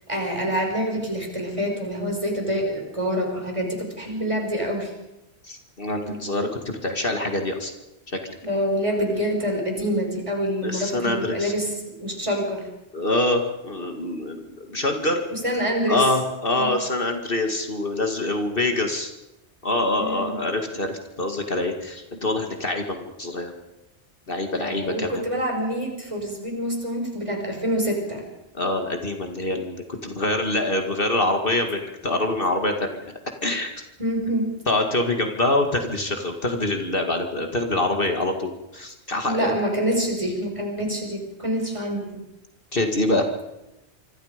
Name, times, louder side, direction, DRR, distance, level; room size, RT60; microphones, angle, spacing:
voice 1, 0.1-4.9 6.0-6.2 8.4-12.6 15.3-16.0 16.5-16.8 20.0-20.4 24.6-28.2 34.0-34.5 39.2-42.2, equal, 25° right, 1 dB, 5.6 m, -26 dB
voice 2, 5.5-7.7 8.2-8.4 10.6-11.5 12.9-15.2 15.9-19.1 19.6-23.5 24.3-25.2 28.5-33.1 33.4-33.8 34.7-39.5 42.7-43.3, left 2 dB, 50° left, 4 dB, 2.2 m, -25 dB
26.0 x 25.5 x 5.1 m, 0.95 s
omnidirectional pair, 1.2 m